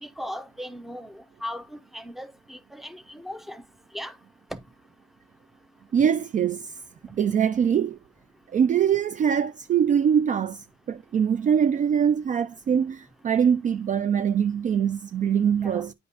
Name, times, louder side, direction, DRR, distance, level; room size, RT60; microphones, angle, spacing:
voice 1, 0.0-3.6 3.9-4.1 4.5-4.6 15.6-15.8, equal, ahead, 0.7 m, -38 dB
voice 2, 5.9-6.8 7.1-8.0 8.5-15.9, right 8 dB, 40° right, 0.4 m, -23 dB
8.4 x 5.2 x 2.7 m
cardioid pair, 90°, 20 cm